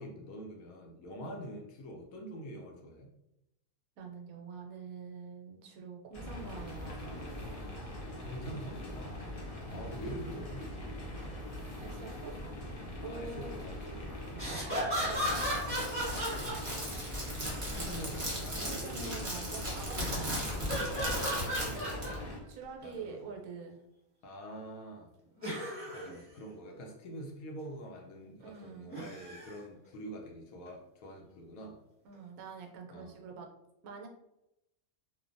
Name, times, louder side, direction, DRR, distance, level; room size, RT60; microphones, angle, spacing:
voice 1, 0.0-3.1 8.2-9.2 9.7-10.9 13.0-14.2 17.7-19.3 20.9-22.3 22.8-23.2 24.2-25.1 25.9-31.8 32.9-33.2, equal, 75° left, 1 dB, 1.0 m, -45 dB
voice 2, 4.0-7.3 9.7-9.9 11.8-12.3 13.0-13.5 14.6-15.6 17.7-20.4 22.5-23.8 28.4-29.3 32.0-33.5 33.8-34.1, right 5 dB, 80° right, 2 dB, 1.0 m, -46 dB
sound 1, 6.1-22.4, left 1 dB, 55° left, 0.4 m, -42 dB
sound 2, 14.3-17.1 19.9-20.2 20.7-22.2 22.8-22.9 25.4-26.1 28.9-29.6 30.7-30.8, equal, 10° right, 1.2 m, -35 dB
Crackle, 15.0-22.1, equal, 30° right, 0.7 m, -38 dB
3.1 x 2.2 x 2.5 m, 0.86 s
omnidirectional pair, 1.5 m